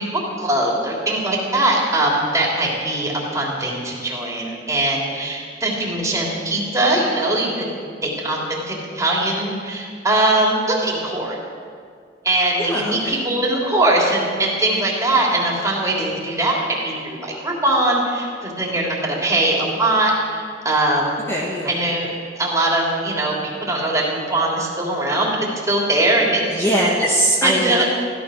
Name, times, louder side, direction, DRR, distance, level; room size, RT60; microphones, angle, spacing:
voice 1, 0.0-7.7 8.0-11.4 12.2-21.2 21.6-22.1 22.4-26.4 27.4-27.9, right 1 dB, 20° right, -3 dB, 3.3 m, -21 dB
voice 2, 12.6-13.2 21.3-21.8 26.5-27.9, right 1 dB, 15° left, -4 dB, 1.7 m, -21 dB
16.0 x 13.0 x 6.4 m, 2.1 s
head